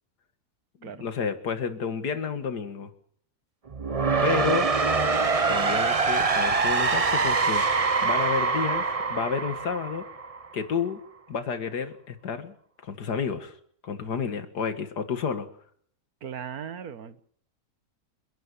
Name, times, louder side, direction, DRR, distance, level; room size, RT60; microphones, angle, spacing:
voice 1, 0.8-2.9 4.2-4.7 5.5-7.6 8.0-10.0 10.5-11.0 11.3-12.5 12.8-13.5 13.8-15.5, left 6 dB, 85° left, 10 dB, 2.3 m, -30 dB
sound 1, 3.7-10.6, right 4 dB, 30° right, 0.8 m, -24 dB
voice 2, 16.2-17.2, right 8 dB, 65° right, 13 dB, 1.7 m, -37 dB
29.5 x 11.0 x 8.4 m, 0.62 s
omnidirectional pair, 1.7 m